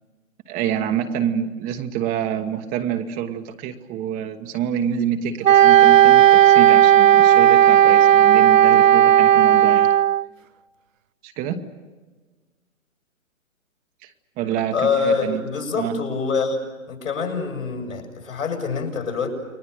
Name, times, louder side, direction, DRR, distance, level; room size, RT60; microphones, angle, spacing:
voice 1, 0.5-9.9 11.2-11.6 14.0-15.4 15.8-16.0, right 9 dB, 20° right, 6 dB, 1.2 m, -27 dB
Wind instrument woodwind instrument, 5.4-10.3, right 11 dB, 70° right, 0.7 m, -13 dB
voice 2, 14.7-16.6 16.9-19.3, left 5 dB, 75° left, 2 dB, 7.9 m, -25 dB
29.5 x 23.0 x 6.7 m, 1.3 s
hypercardioid pair, 135°, 41 cm